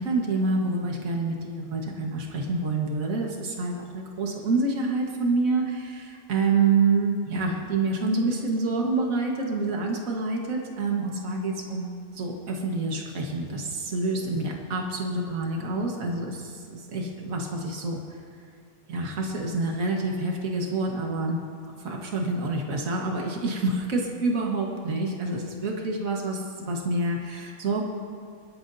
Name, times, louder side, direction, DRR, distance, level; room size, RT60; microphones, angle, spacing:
voice 1, 0.0-18.0 18.9-27.8, right 3 dB, 65° right, 0 dB, 1.9 m, -27 dB
24.0 x 12.5 x 2.7 m, 2.3 s
omnidirectional pair, 1.5 m